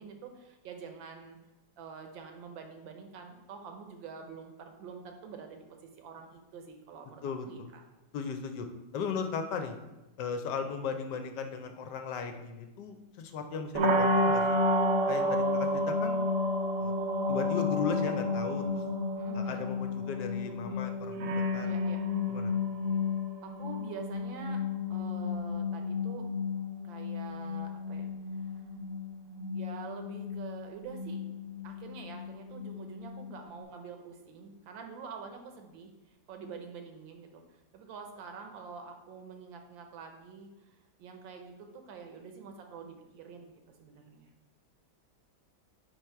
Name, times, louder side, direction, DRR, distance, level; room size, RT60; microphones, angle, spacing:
voice 1, 0.0-1.4 1.8-7.8 19.2-19.7 21.6-22.0 23.4-24.6 24.9-26.3 26.8-28.1 28.3-28.7 29.5-31.3 31.6-44.3, right 5 dB, 85° right, 4 dB, 1.5 m, -46 dB
voice 2, 7.2-7.7 8.1-8.7 8.9-9.8 10.2-14.4 15.1-16.2 16.8-16.9 17.3-18.8 19.3-21.7 22.3-22.5, left 5 dB, 75° left, 6 dB, 1.1 m, -36 dB
sound 1, 13.7-33.6, left 2 dB, 60° right, 0.9 m, -31 dB
4.8 x 4.6 x 4.4 m, 1.1 s
omnidirectional pair, 2.0 m